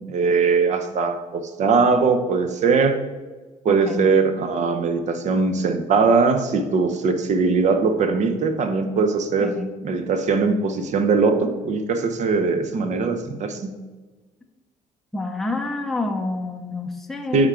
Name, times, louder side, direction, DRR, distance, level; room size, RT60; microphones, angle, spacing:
voice 1, 0.0-3.0 3.6-9.5 9.8-13.7 17.3-17.5, right 4 dB, 50° right, 9 dB, 0.7 m, -20 dB
voice 2, 3.7-4.1 9.4-9.7 15.1-17.5, left 2 dB, ahead, 3 dB, 0.6 m, -28 dB
8.6 x 3.7 x 3.7 m, 1.3 s
cardioid pair, 105°, 15 cm